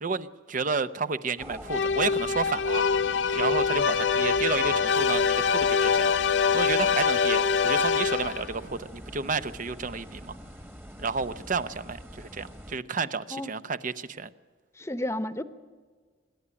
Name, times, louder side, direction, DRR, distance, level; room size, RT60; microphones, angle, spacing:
voice 1, 0.0-2.8 3.3-6.2 6.5-10.4 11.0-14.3, right 4 dB, 50° right, 13 dB, 0.7 m, -31 dB
sound 1, 1.4-12.8, equal, 10° right, 1.4 m, -45 dB
sound 2, 1.7-8.5, left 6 dB, 90° left, 0.7 m, -24 dB
voice 2, 14.8-15.4, left 1 dB, 15° left, 12 dB, 1.0 m, -31 dB
25.5 x 11.0 x 9.8 m, 1.5 s
head